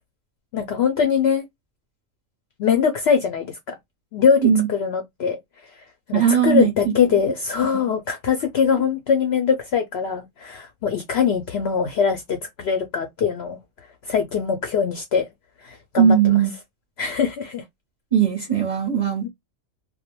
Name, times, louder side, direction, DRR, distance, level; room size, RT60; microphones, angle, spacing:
voice 1, 0.5-1.4 2.6-3.8 4.1-4.4 4.7-5.4 6.1-13.6 14.1-15.3 15.6-16.2 17.0-17.6 19.2-19.3, left 6 dB, 65° left, 0.6 m, -22 dB
voice 2, 6.1-7.2 16.0-16.5 18.1-19.3, right 8 dB, 45° right, 0.6 m, -19 dB
2.3 x 2.1 x 2.9 m
omnidirectional pair, 1.5 m